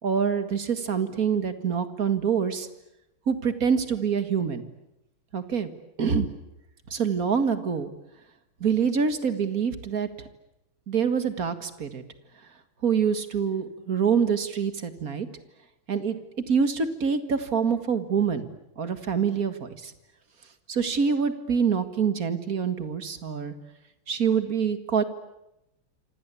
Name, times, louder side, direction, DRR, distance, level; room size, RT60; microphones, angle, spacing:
voice 1, 0.0-2.7 3.3-4.6 5.3-5.7 6.0-6.3 6.9-7.9 8.6-10.1 10.9-12.0 12.8-15.3 15.9-16.2 16.5-18.5 18.8-19.9 20.7-23.5 24.1-25.0, right 6 dB, 45° right, 10 dB, 2.1 m, -25 dB
27.5 x 26.0 x 8.4 m, 0.87 s
omnidirectional pair, 2.4 m